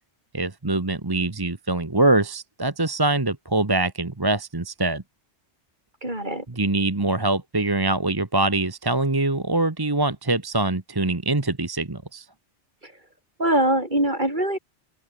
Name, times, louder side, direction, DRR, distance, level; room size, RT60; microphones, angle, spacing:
voice 1, 0.3-5.0 6.5-12.3, right 2 dB, 20° right, 1.2 m, -23 dB
voice 2, 6.0-6.5 12.8-12.9 13.4-14.6, right 1 dB, 40° right, 7.0 m, -23 dB
open air
omnidirectional pair, 1.2 m